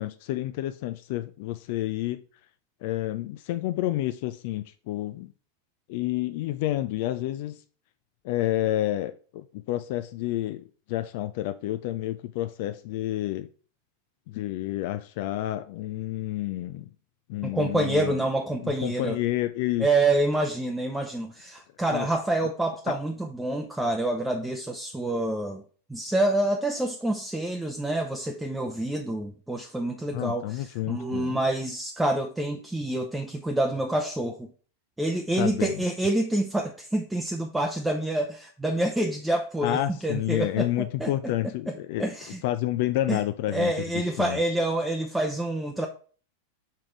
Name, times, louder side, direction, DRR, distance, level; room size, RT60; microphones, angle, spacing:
voice 1, 0.0-2.2 2.8-5.3 5.9-7.6 8.2-13.5 14.3-16.9 17.3-18.2 18.6-19.9 21.9-22.1 22.9-23.0 30.1-31.4 35.4-35.7 39.6-42.1 42.4-44.4, left 14 dB, 50° left, 0.4 m, -29 dB
voice 2, 17.4-19.2 19.8-25.6 25.9-34.5 35.0-41.3 41.7-42.4 43.1-43.2 43.5-45.9, right 1 dB, 5° right, 0.8 m, -27 dB
5.9 x 5.0 x 4.6 m
figure-of-eight pair, 90°, 0 cm